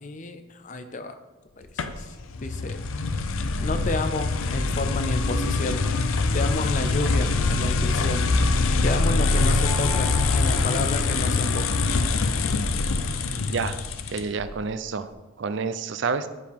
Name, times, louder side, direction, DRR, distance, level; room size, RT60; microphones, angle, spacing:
voice 1, 0.0-1.2 1.6-2.1 2.4-2.8 3.6-5.9 6.3-8.3 8.8-11.8 13.3-13.5, left 2 dB, 35° left, 9 dB, 0.5 m, -31 dB
sound 1, 1.8-14.5, left 3 dB, 85° left, 0.5 m, -24 dB
sound 2, 8.8-11.7, right 1 dB, 10° right, 0.5 m, -41 dB
voice 2, 14.1-15.1 15.4-16.3, right 5 dB, 65° right, 12 dB, 0.5 m, -28 dB
11.0 x 4.8 x 3.6 m, 1.2 s
head